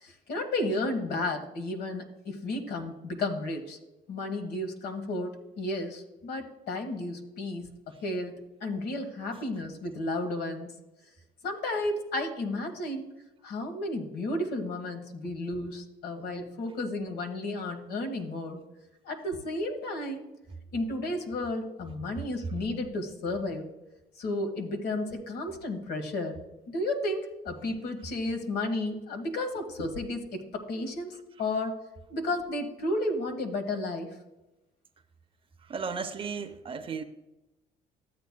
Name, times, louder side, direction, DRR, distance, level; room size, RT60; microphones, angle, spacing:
voice 1, 0.0-3.8 4.1-10.7 11.4-13.1 13.4-18.6 19.1-20.3 20.7-23.7 24.2-26.4 26.7-31.1 31.4-31.8 32.1-34.1, left 2 dB, 70° left, 1.4 m, -33 dB
voice 2, 35.7-37.0, right 5 dB, 30° right, 0.6 m, -35 dB
13.0 x 8.3 x 2.2 m
cardioid pair, 110°, 17 cm